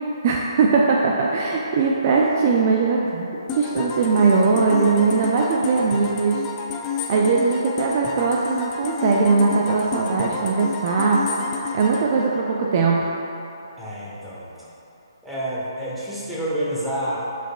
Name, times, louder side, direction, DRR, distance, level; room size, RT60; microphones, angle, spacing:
voice 1, 0.2-6.4 7.1-11.3 11.7-13.0, right 4 dB, 40° right, -2 dB, 0.5 m, -20 dB
sound 1, 3.5-13.2, left 5 dB, 20° left, 0.4 m, -31 dB
voice 2, 13.8-14.5 15.2-17.2, right 1 dB, 5° right, -9 dB, 1.3 m, -28 dB
8.8 x 4.9 x 2.3 m, 2.9 s
figure-of-eight pair, 140°, 2 cm